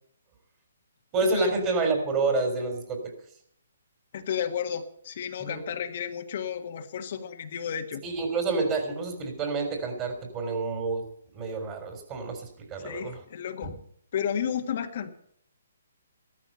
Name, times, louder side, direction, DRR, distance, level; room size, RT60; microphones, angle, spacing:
voice 1, 1.1-3.1 5.4-5.7 8.0-11.0 11.3-13.2 13.6-13.7, right 3 dB, 25° right, 4 dB, 3.7 m, -28 dB
voice 2, 4.1-8.0 12.8-13.8 14.1-15.1, left 8 dB, 50° left, 5 dB, 1.6 m, -32 dB
14.5 x 13.5 x 5.6 m, 0.64 s
hypercardioid pair, 145°, 0 cm